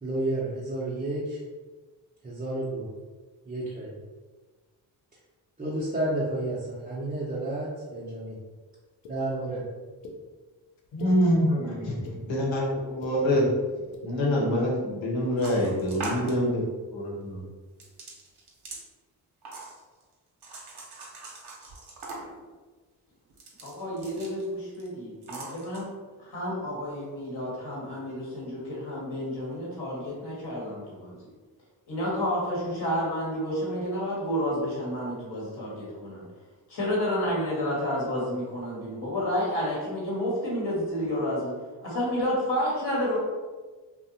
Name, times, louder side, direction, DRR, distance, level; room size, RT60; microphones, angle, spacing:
voice 1, 0.0-1.4 2.2-2.8 3.5-3.9 5.6-8.4 9.1-9.6, right 1 dB, 15° right, -8 dB, 0.6 m, -31 dB
sound 1, 9.0-9.1 10.0-10.2 10.8-11.1 11.8-12.2 12.8-13.1 13.8-14.0, left 2 dB, 80° left, 0.6 m, -42 dB
voice 2, 10.9-11.8 12.3-13.5 14.0-16.6 16.9-17.4, equal, 65° left, -3 dB, 1.0 m, -25 dB
sound 2, 15.4-16.4 17.8-18.8 19.4-20.0 20.4-22.4 23.3-24.4 24.7-24.9 25.2-25.8, right 2 dB, 50° right, 0.9 m, -40 dB
voice 3, 23.6-25.9 26.2-31.3 31.9-36.2 36.7-41.5 41.8-43.2, equal, 50° left, -5 dB, 1.1 m, -30 dB
2.5 x 2.1 x 2.7 m, 1.3 s
supercardioid pair, 50°, 49 cm